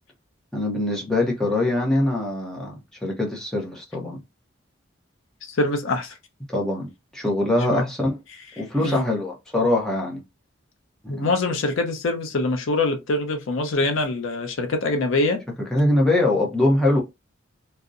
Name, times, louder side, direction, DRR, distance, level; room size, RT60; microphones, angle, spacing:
voice 1, 0.5-4.2 6.5-8.2 8.6-10.2 11.0-11.3 15.7-17.0, left 1 dB, 5° left, 0.6 m, -23 dB
voice 2, 5.4-6.1 7.7-7.8 8.8-9.0 11.1-15.4, left 2 dB, 80° left, 0.6 m, -24 dB
2.7 x 2.0 x 2.4 m
head